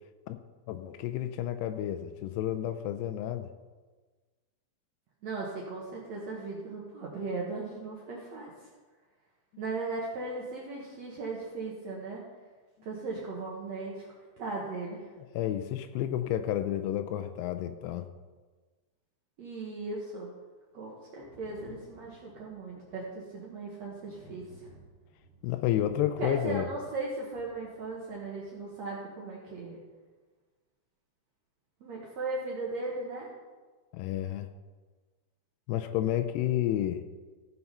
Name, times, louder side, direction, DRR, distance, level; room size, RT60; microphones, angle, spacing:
voice 1, 0.7-3.5 15.2-18.1 25.4-26.7 33.9-34.5 35.7-37.0, left 12 dB, 85° left, 9 dB, 2.6 m, -31 dB
voice 2, 5.2-8.7 9.6-12.3 12.8-14.1 14.4-15.1 19.4-20.3 20.7-24.7 26.2-29.8 31.8-33.3, right 3 dB, 65° right, -3 dB, 1.8 m, -37 dB
Thunder, 21.2-28.5 29.7-29.8, right 1 dB, 50° left, 0.6 m, -56 dB
15.5 x 5.7 x 5.5 m, 1.3 s
omnidirectional pair, 4.9 m